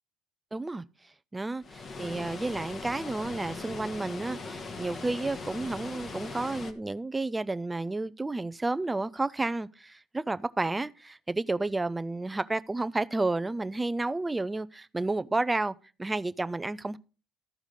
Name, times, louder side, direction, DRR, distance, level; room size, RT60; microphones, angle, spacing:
voice 1, 0.5-0.8 1.3-17.0, right 2 dB, 15° right, 0.5 m, -31 dB
Water, 1.6-6.7, left 3 dB, 40° left, 1.3 m, -40 dB
13.0 x 4.8 x 5.2 m
supercardioid pair, 85°, 0 cm